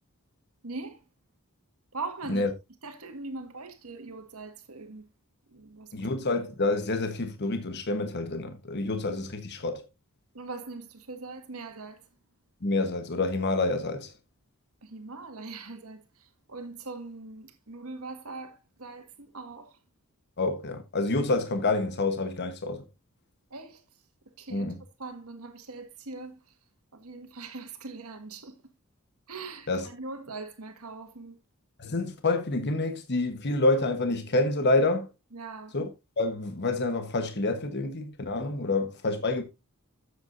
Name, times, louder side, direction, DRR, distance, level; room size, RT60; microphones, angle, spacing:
voice 1, 0.6-1.0 1.9-2.4 2.8-5.0 5.5-6.1 10.3-12.0 14.8-19.8 23.5-23.8 24.3-24.7 25.0-26.6 26.9-28.6 29.3-31.4 35.3-35.8, right 3 dB, 85° right, 1.8 m, -41 dB
voice 2, 5.9-9.8 12.6-14.1 20.4-22.8 24.5-24.8 29.7-29.9 31.8-35.1 35.7-35.8 36.2-39.4, left 2 dB, 50° left, 1.2 m, -28 dB
12.5 x 8.0 x 2.6 m
head